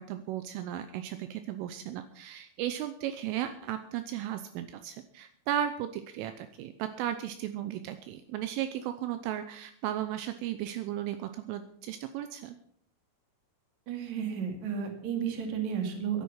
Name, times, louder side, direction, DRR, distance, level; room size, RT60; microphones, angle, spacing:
voice 1, 0.0-12.6, right 11 dB, 80° right, 9 dB, 3.2 m, -35 dB
voice 2, 13.9-16.2, right 7 dB, 45° right, 4 dB, 3.0 m, -33 dB
15.5 x 11.0 x 5.7 m, 0.62 s
omnidirectional pair, 6.0 m